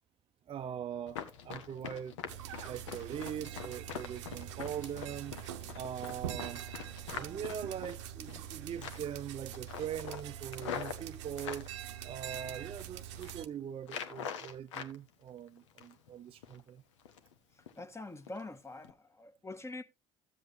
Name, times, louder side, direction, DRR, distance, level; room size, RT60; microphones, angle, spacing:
voice 1, 0.5-2.2 2.6-5.4 5.8-6.6 7.1-11.7 12.0-16.8, right 9 dB, 40° right, 0.5 m, -42 dB
Run, 1.1-8.5 8.8-9.2 9.5-11.7 12.2-12.8 13.1-13.4 13.8-14.9 15.3-16.1 16.4-16.6 17.0-17.3 17.7-17.8 18.3-18.4 18.8-18.9, left 8 dB, 85° left, 0.9 m, -44 dB
sound 1, 2.3-13.5, right 11 dB, 80° right, 0.7 m, -44 dB
voice 2, 17.8-19.8, left 2 dB, 15° left, 1.1 m, -45 dB
13.0 x 7.7 x 2.6 m
hypercardioid pair, 60°, 15 cm